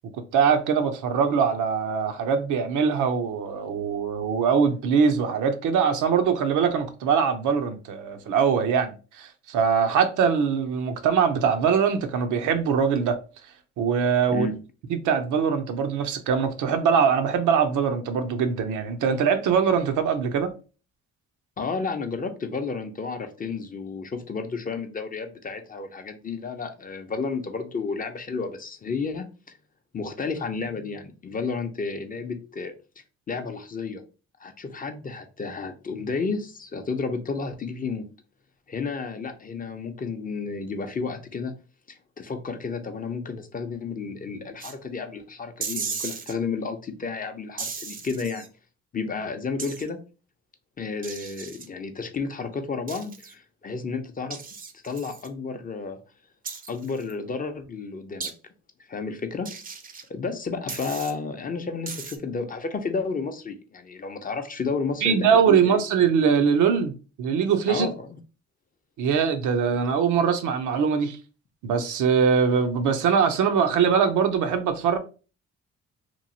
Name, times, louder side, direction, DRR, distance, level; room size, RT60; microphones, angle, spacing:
voice 1, 0.3-13.2 13.8-14.5 14.9-20.5 65.0-66.9 67.2-67.9 69.0-71.2 71.6-75.0, right 6 dB, 80° right, 0.6 m, -22 dB
voice 2, 21.6-29.6 29.9-32.7 33.3-34.0 34.4-38.1 38.7-41.5 41.9-48.5 48.9-50.0 50.8-54.4 54.8-56.0 56.7-58.3 58.9-59.5 60.1-65.8 67.7-68.2, left 4 dB, 30° left, 0.5 m, -31 dB
sound 1, 44.6-44.7 45.6-46.3 47.6-48.5 49.6-49.9 51.0-51.7 52.9-53.3 54.3-55.3 56.4-57.1 58.2-58.3 59.4-60.1 60.7-61.1 61.9-62.2, right 5 dB, 30° right, 0.5 m, -36 dB
3.0 x 2.3 x 2.7 m
cardioid pair, 90°, 30 cm